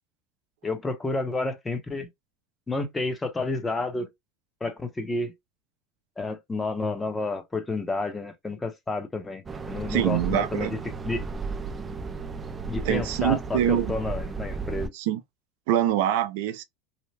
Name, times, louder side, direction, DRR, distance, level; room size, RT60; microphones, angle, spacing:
voice 1, 0.6-2.1 2.7-4.1 4.6-5.3 6.2-10.8 11.0-11.2 12.7-14.9, left 3 dB, 15° left, 0.7 m, -30 dB
sound 1, 9.5-14.9, right 4 dB, 20° right, 0.3 m, -34 dB
voice 2, 9.9-10.7 12.8-13.9 14.9-15.2 15.7-16.6, right 11 dB, 75° right, 0.5 m, -24 dB
2.8 x 2.1 x 3.2 m
supercardioid pair, 125°, 0 cm